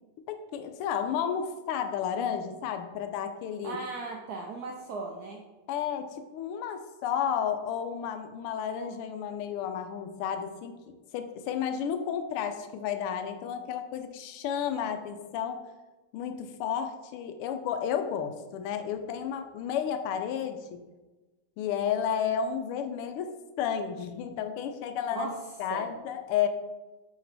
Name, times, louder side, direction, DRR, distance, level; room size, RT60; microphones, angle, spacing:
voice 1, 0.3-3.8 5.7-10.8 11.1-15.6 16.1-20.8 21.6-23.3 23.6-25.3 25.6-26.5, left 8 dB, 90° left, 7 dB, 1.5 m, -32 dB
voice 2, 3.6-5.4 25.1-25.4 25.7-25.9, right 3 dB, 85° right, 1 dB, 0.8 m, -37 dB
8.4 x 3.0 x 4.0 m, 1.2 s
omnidirectional pair, 2.4 m